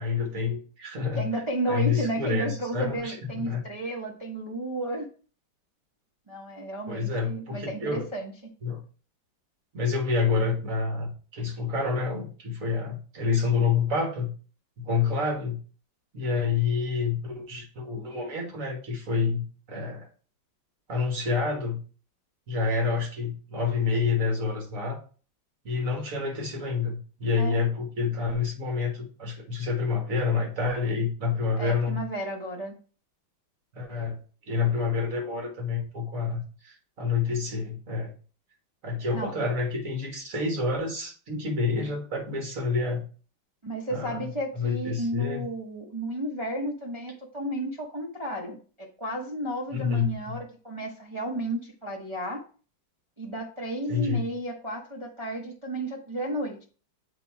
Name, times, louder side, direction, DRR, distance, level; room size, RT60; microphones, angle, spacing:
voice 1, 0.0-1.2 1.7-3.6 6.9-8.1 8.6-8.8 9.7-14.3 14.8-15.6 16.1-20.1 20.9-21.8 22.5-25.0 25.7-32.0 33.7-34.2 34.5-38.1 38.8-43.0 43.9-45.4 49.7-50.4 53.9-54.3, left 4 dB, 50° right, 1 dB, 1.8 m, -28 dB
voice 2, 1.2-5.1 6.3-8.3 27.4-27.6 31.6-32.8 39.1-39.3 43.6-52.4 53.2-56.6, right 1 dB, 25° right, -2 dB, 0.6 m, -33 dB
7.9 x 3.0 x 4.5 m, 0.38 s
omnidirectional pair, 2.0 m